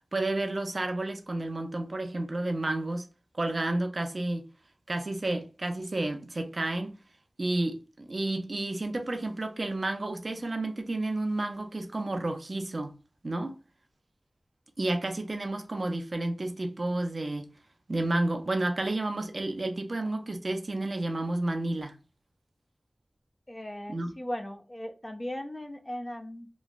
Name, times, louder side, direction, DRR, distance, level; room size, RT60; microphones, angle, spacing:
voice 1, 0.1-3.1 3.3-4.5 4.9-6.9 7.4-12.9 13.2-13.5 14.8-17.5 17.9-22.0 23.9-24.2, right 2 dB, 55° right, 0.5 m, -31 dB
voice 2, 23.5-26.5, left 1 dB, 25° left, 0.4 m, -38 dB
3.0 x 2.2 x 2.4 m
wide cardioid pair, 50°, 0 cm